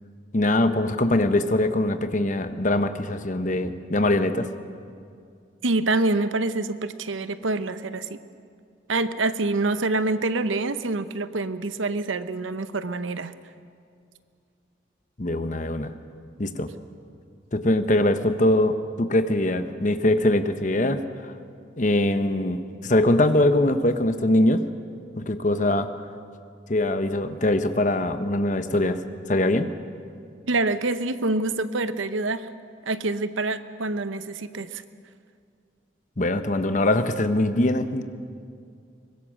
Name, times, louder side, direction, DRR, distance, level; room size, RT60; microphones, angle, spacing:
voice 1, 0.3-4.5 15.2-15.9 16.4-16.7 17.5-21.0 21.8-24.7 25.2-25.9 26.7-29.0 29.3-29.7 36.2-38.0, left 1 dB, 40° left, 9 dB, 1.0 m, -22 dB
voice 2, 5.6-8.2 8.9-13.3 30.5-32.5 32.9-34.8, right 2 dB, 85° right, 12 dB, 0.9 m, -26 dB
23.5 x 21.0 x 6.4 m, 2.3 s
head